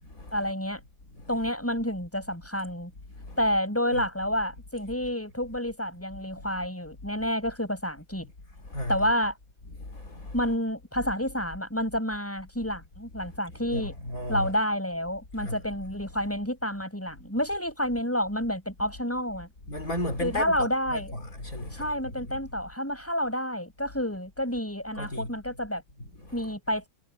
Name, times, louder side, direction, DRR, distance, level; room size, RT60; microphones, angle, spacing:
voice 1, 0.3-0.8 1.3-2.9 3.4-8.3 8.9-9.4 10.3-14.0 14.3-19.5 20.2-21.1 21.7-25.8 26.3-26.9, equal, 5° left, 7.9 m, -29 dB
voice 2, 8.7-9.1 9.8-10.3 13.3-13.4 13.7-14.5 15.3-15.6 19.7-22.4 25.0-25.3 26.0-26.5, left 1 dB, 50° left, 3.8 m, -35 dB
omnidirectional pair, 1.9 m